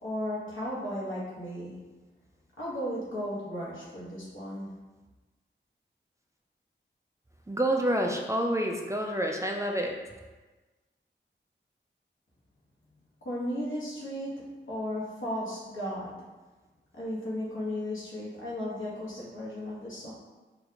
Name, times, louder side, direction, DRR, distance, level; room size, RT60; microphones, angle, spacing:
voice 1, 0.0-1.9 2.6-4.7 13.2-16.1 17.0-20.1, equal, 80° left, -7 dB, 1.2 m, -35 dB
voice 2, 7.5-9.9, right 1 dB, 15° right, 1 dB, 0.3 m, -28 dB
4.1 x 2.6 x 2.8 m, 1.2 s
wide cardioid pair, 90°, 20 cm